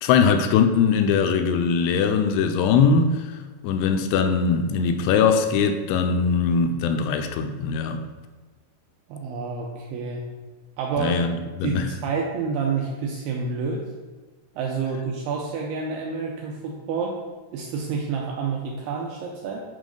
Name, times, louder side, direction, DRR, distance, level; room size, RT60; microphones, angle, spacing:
voice 1, 0.0-3.2 3.6-8.0 11.0-11.9, left 6 dB, 85° left, 6 dB, 2.6 m, -21 dB
voice 2, 9.1-10.2 10.8-11.2 11.6-11.8 12.0-13.8 14.6-17.2 17.5-19.6, right 5 dB, 80° right, -2 dB, 2.6 m, -28 dB
7.3 x 3.0 x 5.1 m, 1.3 s
omnidirectional pair, 4.7 m